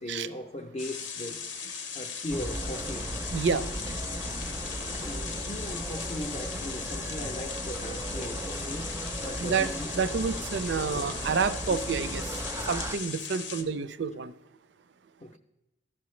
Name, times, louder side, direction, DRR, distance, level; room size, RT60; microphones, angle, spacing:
voice 1, 0.0-3.1 5.0-10.1 15.2-15.4, left 1 dB, 35° left, 0.5 m, -39 dB
sound 1, 0.8-13.6, left 6 dB, 90° left, 0.9 m, -38 dB
sound 2, 2.3-13.0, right 1 dB, 15° right, 0.4 m, -36 dB
voice 2, 3.3-3.7 4.8-4.9 9.4-9.7 9.9-12.4 12.7-14.4, right 5 dB, 70° right, 0.4 m, -29 dB
13.5 x 5.9 x 3.1 m
head